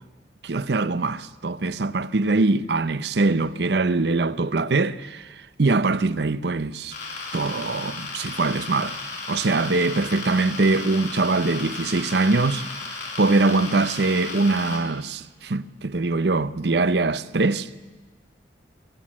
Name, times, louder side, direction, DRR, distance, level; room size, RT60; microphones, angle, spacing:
voice 1, 0.4-7.0 7.3-9.0 9.3-12.6 13.2-17.7, right 3 dB, 70° right, 0.7 m, -23 dB
sound 1, 6.9-14.8, left 3 dB, 65° left, 5.5 m, -34 dB
23.0 x 17.0 x 7.4 m
head